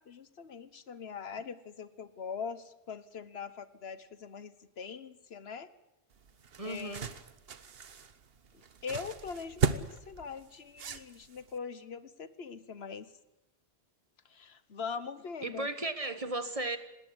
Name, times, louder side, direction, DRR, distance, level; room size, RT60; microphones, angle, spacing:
voice 1, 0.0-5.7 6.6-7.1 8.8-13.1 14.3-15.7, left 6 dB, 75° left, 14 dB, 1.3 m, -42 dB
sound 1, 6.1-11.6, right 6 dB, 65° right, 1.3 m, -37 dB
voice 2, 6.6-7.1 15.4-16.8, right 2 dB, 35° right, 10 dB, 1.5 m, -35 dB
19.5 x 18.5 x 8.8 m, 0.95 s
omnidirectional pair, 1.1 m